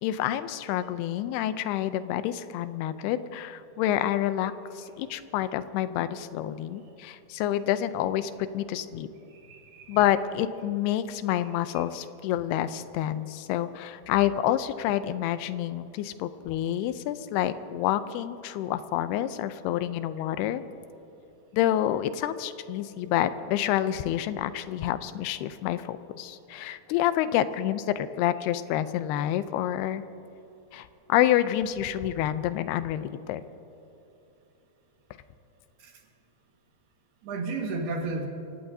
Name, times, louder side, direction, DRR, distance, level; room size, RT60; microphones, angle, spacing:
voice 1, 0.0-9.1 9.9-20.6 21.5-30.0 30.7-33.4, left 12 dB, 85° left, 12 dB, 2.7 m, -28 dB
voice 2, 9.4-10.0 35.8-35.9 37.2-38.3, right 3 dB, 80° right, 2 dB, 3.7 m, -33 dB
30.0 x 16.5 x 2.7 m, 2.8 s
omnidirectional pair, 4.5 m